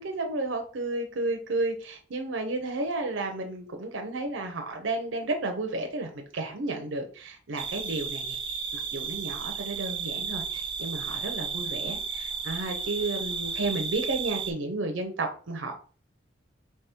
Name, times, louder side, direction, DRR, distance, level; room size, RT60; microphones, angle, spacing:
voice 1, 0.0-8.6 8.9-15.7, right 2 dB, 75° right, 4 dB, 0.6 m, -32 dB
sound 1, 7.6-14.5, right 6 dB, 25° right, 0.5 m, -33 dB
3.5 x 3.1 x 4.3 m, 0.40 s
head